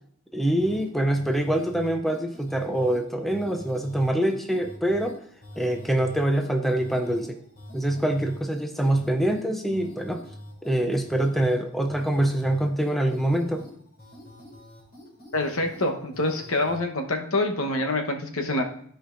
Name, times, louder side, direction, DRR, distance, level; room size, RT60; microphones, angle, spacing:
voice 1, 0.3-5.2 5.6-7.4 7.7-10.2 10.6-13.6, right 1 dB, ahead, 4 dB, 0.5 m, -25 dB
sound 1, 0.6-16.8, left 1 dB, 45° left, 2.9 m, -45 dB
voice 2, 15.3-18.6, left 2 dB, 75° left, 4 dB, 1.0 m, -26 dB
13.5 x 5.1 x 2.5 m, 0.62 s
head